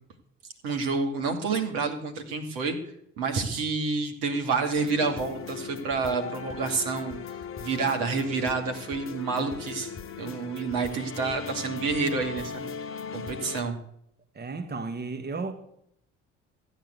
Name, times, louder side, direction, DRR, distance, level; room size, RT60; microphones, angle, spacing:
voice 1, 0.6-2.8 3.2-7.2 7.6-12.7 13.1-13.8, right 4 dB, 65° right, 2.5 m, -29 dB
sound 1, 4.8-13.6, left 6 dB, 35° left, 1.2 m, -38 dB
voice 2, 14.4-15.5, right 4 dB, 30° right, 1.7 m, -33 dB
14.5 x 9.2 x 8.2 m
hypercardioid pair, 55°, 36 cm